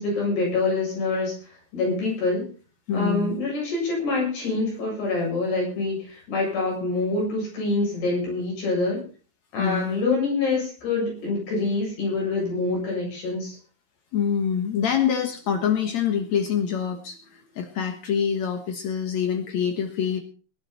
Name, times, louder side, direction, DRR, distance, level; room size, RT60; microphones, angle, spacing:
voice 1, 0.0-1.3 1.7-2.5 2.9-9.0 9.5-13.6, left 3 dB, 55° left, -2 dB, 9.7 m, -26 dB
voice 2, 2.9-3.3 9.6-10.0 14.1-20.2, left 7 dB, 90° left, 5 dB, 1.5 m, -25 dB
20.5 x 11.0 x 4.3 m, 0.38 s
omnidirectional pair, 5.6 m